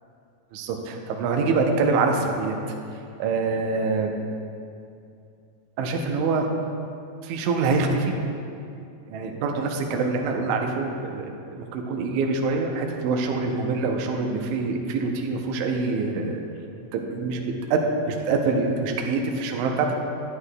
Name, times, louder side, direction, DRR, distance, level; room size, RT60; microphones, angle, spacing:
voice 1, 0.5-2.6 3.2-4.1 5.8-6.5 7.2-8.1 9.1-11.3 11.6-16.4 16.9-19.9, right 4 dB, 80° right, 2 dB, 1.7 m, -25 dB
10.5 x 9.6 x 2.2 m, 2.6 s
omnidirectional pair, 4.0 m